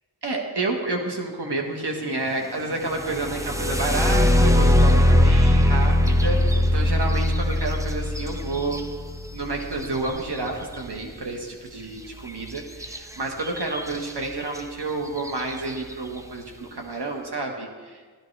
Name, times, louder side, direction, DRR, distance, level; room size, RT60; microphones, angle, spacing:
voice 1, 0.2-8.8 9.3-18.0, right 2 dB, 90° right, 1 dB, 1.5 m, -30 dB
sound 1, 2.9-10.7 12.8-13.0 13.4-14.0 14.6-14.7 15.2-15.5, left 1 dB, 10° right, 0.7 m, -20 dB
15.5 x 13.0 x 3.3 m, 1.5 s
wide cardioid pair, 50°, 39 cm